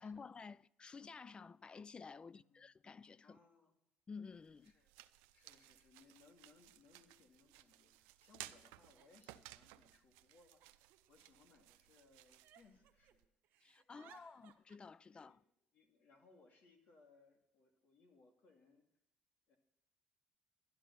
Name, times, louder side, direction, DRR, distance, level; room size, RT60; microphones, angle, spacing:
voice 1, 0.0-3.4 4.1-4.7 13.6-15.4, left 5 dB, 30° left, 0.4 m, -52 dB
voice 2, 2.2-2.6 3.2-3.7 4.6-4.9 5.3-10.8 11.1-13.2 13.9-14.4 15.1-15.4 15.7-18.9 19.5-19.6, left 4 dB, 60° left, 2.5 m, -68 dB
sound 1, 4.3-13.3, right 16 dB, 90° right, 0.5 m, -59 dB
Giggle, 7.1-7.2 7.5-8.0 8.6-9.7 10.3-11.7 12.1-13.2 13.4-14.8, right 10 dB, 70° right, 1.0 m, -67 dB
12.0 x 10.5 x 5.8 m
supercardioid pair, 80°, 3 cm